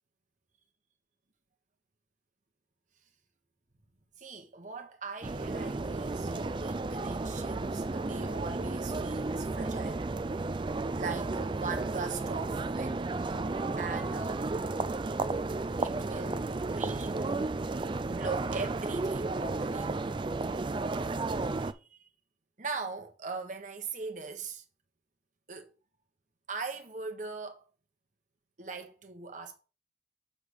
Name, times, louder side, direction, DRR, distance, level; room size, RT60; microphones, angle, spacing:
voice 1, 4.2-10.0 11.0-13.1 13.8-14.6 15.8-20.0 21.5-22.1 22.6-24.6 25.5-25.7 26.5-27.6 28.6-29.5, right 4 dB, 45° right, 1.2 m, -40 dB
sound 1, 5.2-21.7, right 3 dB, 25° right, 0.4 m, -33 dB
6.7 x 3.6 x 6.3 m
head